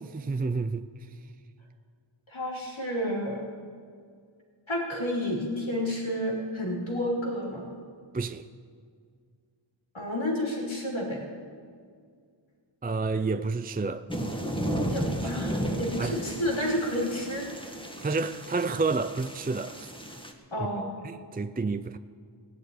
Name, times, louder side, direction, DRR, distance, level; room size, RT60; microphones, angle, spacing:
voice 1, 0.0-1.1 8.1-8.4 12.8-14.0 16.0-16.2 18.0-19.9 21.0-22.0, right 4 dB, 20° right, 0.4 m, -30 dB
voice 2, 2.3-3.5 4.7-7.7 9.9-11.2 14.9-17.5 20.5-20.9, equal, 70° left, 3.5 m, -30 dB
sound 1, 14.1-20.3, equal, 10° left, 1.6 m, -34 dB
19.0 x 6.7 x 9.7 m
wide cardioid pair, 65°, 48 cm